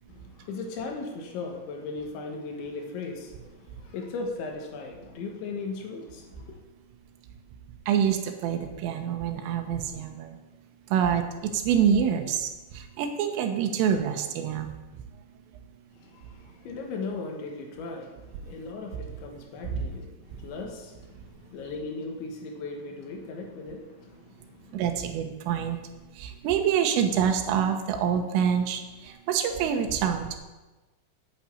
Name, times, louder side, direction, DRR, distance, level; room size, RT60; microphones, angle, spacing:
voice 1, 0.1-6.6 15.9-24.8, left 3 dB, 70° left, 2 dB, 3.5 m, -38 dB
voice 2, 7.9-10.4 10.9-14.7 19.7-19.9 21.6-21.7 24.7-25.8 26.2-30.4, right 8 dB, 80° right, 5 dB, 3.6 m, -26 dB
9.1 x 8.9 x 8.5 m, 1.2 s
omnidirectional pair, 5.9 m